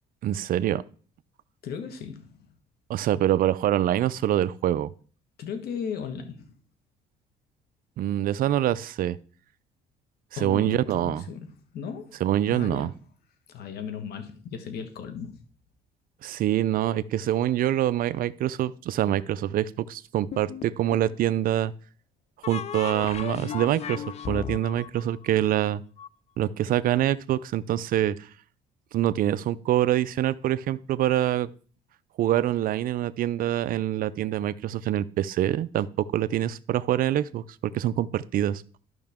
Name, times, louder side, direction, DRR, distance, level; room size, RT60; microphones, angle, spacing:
voice 1, 0.2-0.8 2.9-4.9 8.0-9.2 10.4-11.2 12.2-12.9 16.2-21.7 22.5-25.8 26.4-28.3 28.9-31.5 32.2-38.6, right 12 dB, 60° right, 16 dB, 0.5 m, -25 dB
voice 2, 1.6-2.3 5.4-6.5 10.4-12.2 12.5-12.9 13.5-15.4, left 6 dB, 70° left, 7 dB, 1.4 m, -36 dB
sound 1, 20.3-21.2 22.4-26.1, left 9 dB, 40° left, 0.4 m, -36 dB
12.5 x 5.6 x 3.6 m, 0.42 s
cardioid pair, 110°, 17 cm